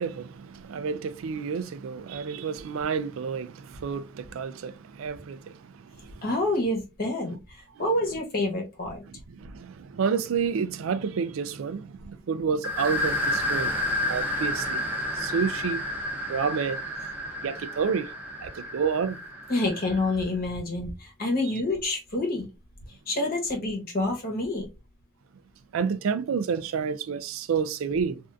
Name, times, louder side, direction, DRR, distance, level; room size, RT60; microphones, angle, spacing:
voice 1, 0.0-6.2 9.3-13.7 14.1-14.9 15.2-15.9 16.3-16.8 17.4-18.1 18.4-19.2 25.7-28.2, right 6 dB, 90° right, 0.4 m, -29 dB
voice 2, 6.2-9.0 19.5-22.5 23.1-24.7, left 2 dB, 45° left, 1.0 m, -28 dB
sound 1, 12.6-20.1, left 1 dB, 10° right, 0.7 m, -30 dB
3.4 x 2.5 x 2.5 m
head